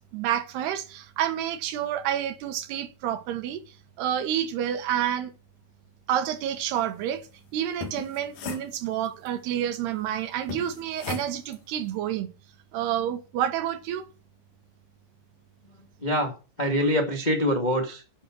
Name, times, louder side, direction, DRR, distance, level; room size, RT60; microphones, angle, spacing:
voice 1, 0.1-3.6 4.0-5.3 6.1-12.3 12.7-14.1, right 10 dB, 75° right, 3.1 m, -29 dB
sound 1, 7.6-9.3 10.5-11.6, left 6 dB, 60° left, 3.3 m, -38 dB
voice 2, 16.0-16.3 16.6-18.2, equal, 80° left, 0.4 m, -25 dB
11.0 x 9.1 x 6.4 m
omnidirectional pair, 5.0 m